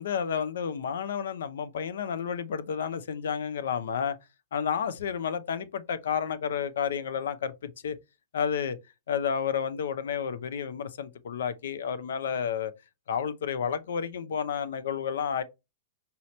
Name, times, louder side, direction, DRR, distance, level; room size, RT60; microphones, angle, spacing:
voice 1, 0.0-4.2 4.5-8.0 8.3-8.8 9.1-12.7 13.1-15.4, left 7 dB, 80° left, 0.6 m, -31 dB
5.4 x 2.9 x 3.1 m
hypercardioid pair, 140°, 0 cm